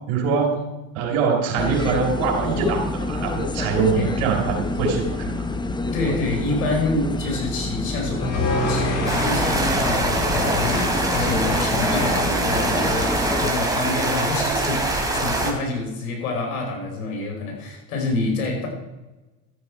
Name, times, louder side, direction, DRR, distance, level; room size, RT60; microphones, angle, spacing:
voice 1, 0.1-0.7 0.9-5.4, right 5 dB, 75° right, 2 dB, 4.0 m, -23 dB
sound 1, 1.6-13.5, left 3 dB, 10° left, 0.7 m, -27 dB
voice 2, 5.9-18.7, left 3 dB, 85° left, 1 dB, 4.9 m, -27 dB
sound 2, 8.2-11.4, left 1 dB, 50° left, 3.4 m, -27 dB
sound 3, 9.1-15.5, right 2 dB, 10° right, 2.9 m, -23 dB
13.5 x 8.4 x 4.8 m, 1.1 s
hypercardioid pair, 95°, 42 cm